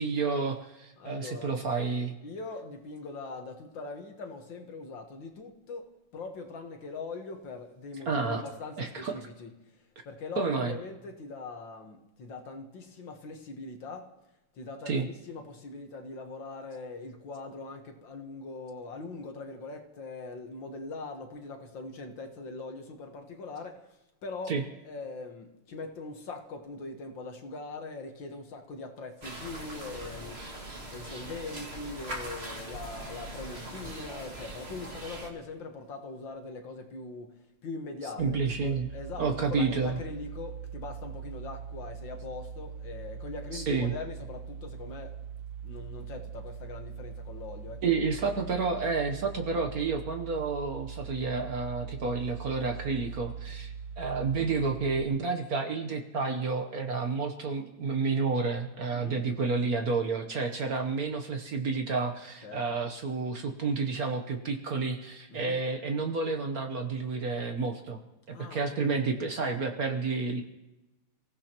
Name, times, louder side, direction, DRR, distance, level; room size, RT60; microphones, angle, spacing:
voice 1, 0.0-2.1 8.1-8.4 8.8-9.2 10.4-10.7 14.9-15.1 24.5-24.6 38.2-38.9 39.2-40.0 43.5-43.9 47.8-68.0 68.3-70.4, right 4 dB, 50° right, 1.3 m, -30 dB
voice 2, 1.0-1.6 2.2-9.5 10.1-14.1 14.5-24.0 24.2-30.4 30.9-45.2 45.6-47.8 58.9-59.2 62.4-62.8 65.3-65.6 68.3-68.9, left 3 dB, 65° left, 2.0 m, -41 dB
sound 1, 29.2-35.3, right 1 dB, 30° right, 2.1 m, -41 dB
sound 2, 38.2-55.0, right 6 dB, 70° right, 0.9 m, -42 dB
29.5 x 16.0 x 3.0 m
omnidirectional pair, 2.3 m